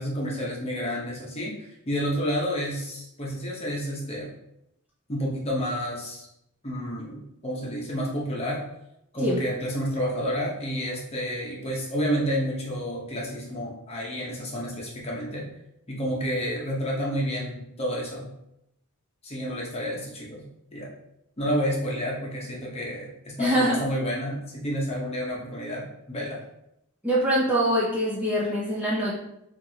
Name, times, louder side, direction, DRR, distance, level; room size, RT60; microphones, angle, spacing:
voice 1, 0.0-1.6 1.8-4.3 5.1-6.3 6.6-8.6 9.1-15.5 15.9-18.3 19.2-20.5 20.7-20.9 21.4-26.4, equal, 30° left, -3 dB, 0.9 m, -30 dB
voice 2, 23.4-23.8 27.0-29.1, equal, 5° right, -7 dB, 0.6 m, -24 dB
4.5 x 2.6 x 2.8 m, 0.81 s
head